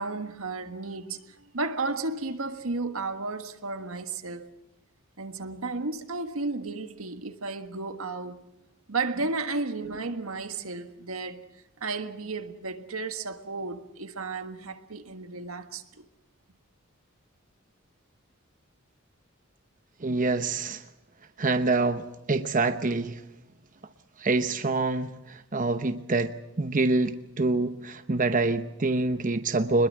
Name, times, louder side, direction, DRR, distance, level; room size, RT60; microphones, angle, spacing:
voice 1, 0.0-4.5 5.2-8.4 8.9-11.5 11.8-16.0, right 3 dB, 85° right, 1.6 m, -33 dB
voice 2, 20.0-20.8 21.4-23.2 24.2-29.9, right 3 dB, 40° right, 0.9 m, -26 dB
23.5 x 21.5 x 7.6 m
head